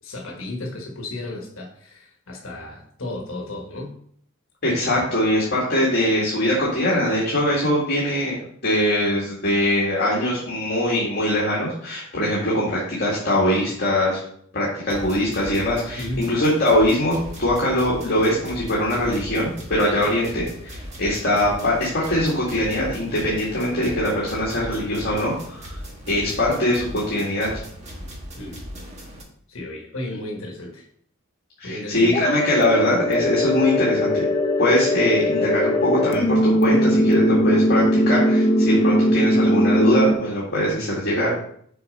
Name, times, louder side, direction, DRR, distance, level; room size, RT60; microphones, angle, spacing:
voice 1, 0.0-3.9 16.0-16.3 20.1-20.2 28.4-28.6 29.5-30.9 31.6-32.1, left 1 dB, 65° left, 0 dB, 1.5 m, -33 dB
voice 2, 4.6-14.2 14.5-25.8 26.1-27.5 31.6-34.3 34.6-41.4, left 1 dB, 50° left, -6 dB, 1.9 m, -22 dB
sound 1, 14.9-29.2, equal, 30° right, 1.4 m, -38 dB
sound 2, 32.1-40.1, equal, 25° left, 0.6 m, -20 dB
6.8 x 4.2 x 5.3 m, 0.64 s
head